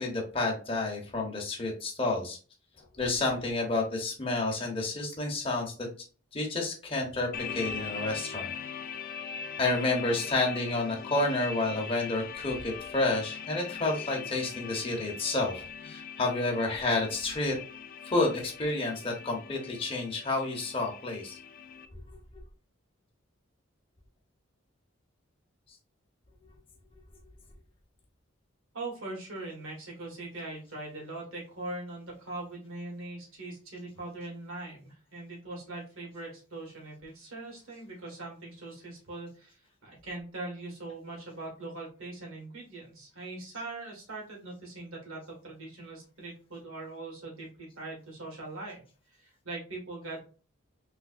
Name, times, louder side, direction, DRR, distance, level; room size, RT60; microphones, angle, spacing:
voice 1, 0.0-2.4 3.0-5.9 6.3-8.5 9.6-17.6 18.0-21.4, left 2 dB, 25° left, -1 dB, 0.9 m, -30 dB
sound 1, 7.3-21.9, left 6 dB, 40° left, 0.3 m, -41 dB
voice 2, 28.7-48.8 49.1-50.2, right 2 dB, 80° right, -2 dB, 1.6 m, -41 dB
3.3 x 3.2 x 2.4 m, 0.37 s
head